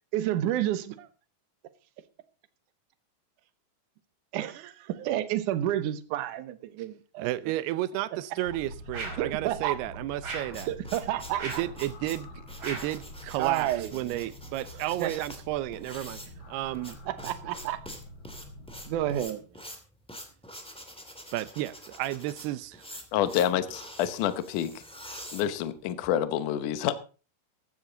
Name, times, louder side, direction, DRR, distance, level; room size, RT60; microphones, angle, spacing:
voice 1, 0.1-1.1 4.3-7.3 9.2-9.8 10.7-11.5 13.4-14.2 15.0-15.1 17.1-17.8 18.9-19.4, right 12 dB, 70° right, 2.1 m, -30 dB
voice 2, 7.2-10.7 11.4-17.0 21.3-23.0, right 15 dB, 90° right, 2.8 m, -33 dB
sound 1, 8.4-19.2, left 1 dB, 45° left, 1.7 m, -46 dB
sound 2, 8.9-9.3 10.2-10.6 11.4-11.8 12.6-13.0, right 4 dB, 40° right, 5.7 m, -37 dB
sound 3, 10.1-26.1, equal, 5° left, 1.2 m, -46 dB
voice 3, 23.1-24.7 25.3-26.9, left 10 dB, 70° left, 2.2 m, -28 dB
15.5 x 12.0 x 3.9 m
omnidirectional pair, 4.5 m